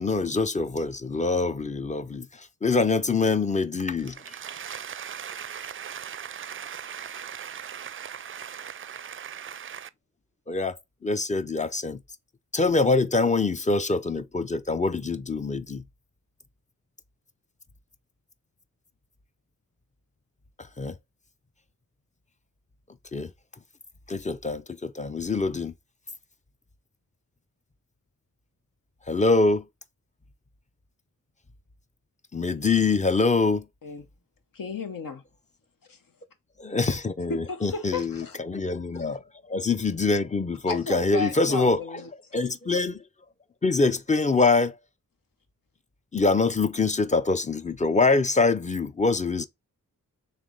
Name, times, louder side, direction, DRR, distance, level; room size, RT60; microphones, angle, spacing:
voice 1, 0.0-4.3 10.5-10.8 11.0-12.0 12.5-15.8 20.8-21.0 23.1-23.3 24.1-25.7 29.1-29.7 32.3-33.7 36.6-41.8 42.3-43.0 43.6-44.8 46.1-49.5, left 3 dB, 20° left, 0.5 m, -24 dB
voice 2, 4.0-9.9, right 8 dB, 40° right, 0.4 m, -39 dB
voice 3, 34.5-35.2 35.9-36.0 37.3-38.4 38.9-39.0 40.7-42.1, left 4 dB, 75° left, 1.0 m, -33 dB
3.3 x 3.2 x 3.7 m
wide cardioid pair, 80°, 34 cm